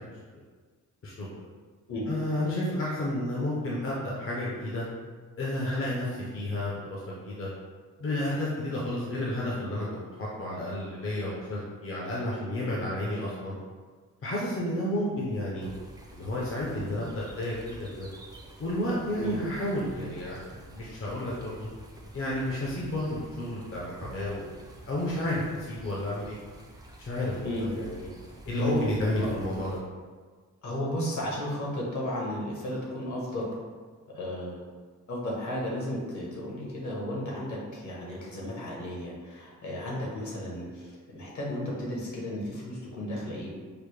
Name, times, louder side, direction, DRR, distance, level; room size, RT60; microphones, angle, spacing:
voice 1, 1.0-1.3 2.1-4.8 5.4-7.5 8.0-13.5 14.2-15.7 16.1-18.1 18.6-21.7 22.1-24.6 24.9-26.4 27.1-28.1 28.5-29.8, left 1 dB, 45° left, -5 dB, 0.6 m, -31 dB
sound 1, 15.6-29.8, right 1 dB, 15° right, 0.3 m, -48 dB
voice 2, 30.6-33.4 34.1-34.6 35.1-43.5, left 1 dB, 65° left, -4 dB, 1.0 m, -34 dB
4.9 x 2.1 x 3.1 m, 1.5 s
wide cardioid pair, 175°, 32 cm